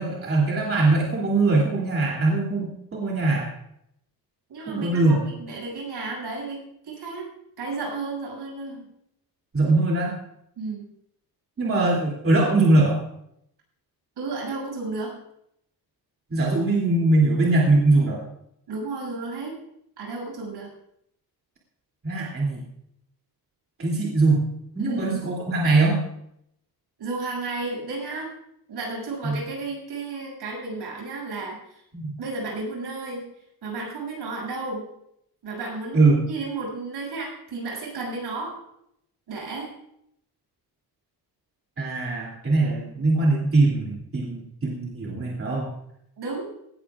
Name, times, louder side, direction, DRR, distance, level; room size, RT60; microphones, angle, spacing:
voice 1, 0.0-3.5 4.7-5.2 9.5-10.1 11.6-13.0 16.3-18.2 22.0-22.6 23.8-24.4 24.7-26.0 29.2-29.4 31.9-32.1 35.9-36.2 41.8-45.7, right 2 dB, 35° right, -3 dB, 2.9 m, -21 dB
voice 2, 4.5-7.3 7.6-8.9 10.6-10.8 14.2-15.2 18.7-19.6 20.0-20.7 24.8-25.2 27.0-28.3 28.7-31.8 32.2-33.3 33.6-34.9 35.4-38.6 39.3-39.7 46.2-46.5, right 3 dB, 75° right, -1 dB, 7.2 m, -33 dB
18.5 x 17.5 x 2.5 m, 0.76 s
wide cardioid pair, 150°, 40 cm